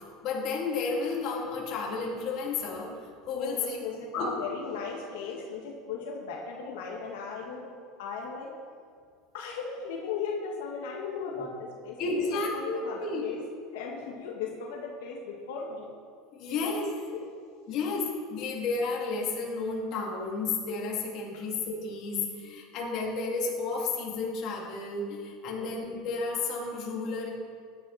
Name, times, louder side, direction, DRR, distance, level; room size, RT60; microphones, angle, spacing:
voice 1, 0.2-2.9 3.3-3.8 4.1-4.3 12.0-13.2 16.3-16.9 17.7-27.3, left 4 dB, 50° left, -3 dB, 3.1 m, -32 dB
voice 2, 3.3-7.7 8.0-8.5 9.3-13.4 13.7-15.9 16.5-16.6 17.1-17.2 25.5-25.9, left 5 dB, 90° left, -2 dB, 2.0 m, -37 dB
16.0 x 11.0 x 4.4 m, 2.1 s
supercardioid pair, 150°, 0 cm